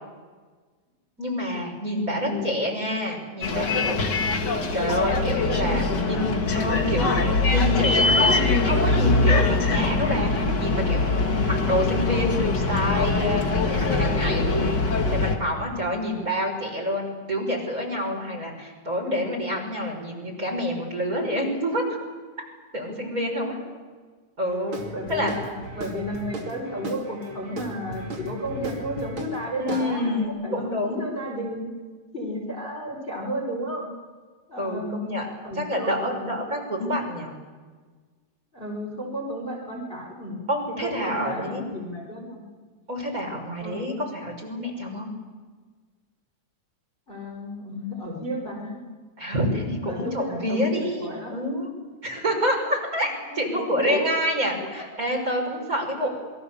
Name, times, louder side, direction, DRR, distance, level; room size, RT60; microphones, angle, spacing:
voice 1, 1.2-4.0 4.7-6.2 6.5-14.8 15.1-22.0 22.7-23.6 24.4-24.8 25.1-25.3 29.6-31.0 34.6-35.3 35.6-37.3 40.5-41.6 42.9-45.1 49.2-51.7 52.0-56.1, equal, 25° right, 0 dB, 6.4 m, -27 dB
voice 2, 2.2-2.5 5.5-6.4 24.9-31.7 32.1-33.9 34.5-35.0 35.4-36.4 38.5-42.4 43.6-43.9 47.1-48.7 49.8-51.3 53.3-54.2 56.0-56.1, equal, 15° left, -1 dB, 4.7 m, -33 dB
Bus, 3.4-15.3, left 3 dB, 35° left, 2.4 m, -22 dB
Guitar / Drum, 24.7-30.3, right 1 dB, 40° right, 3.1 m, -36 dB
28.0 x 22.5 x 7.2 m, 1.5 s
omnidirectional pair, 3.8 m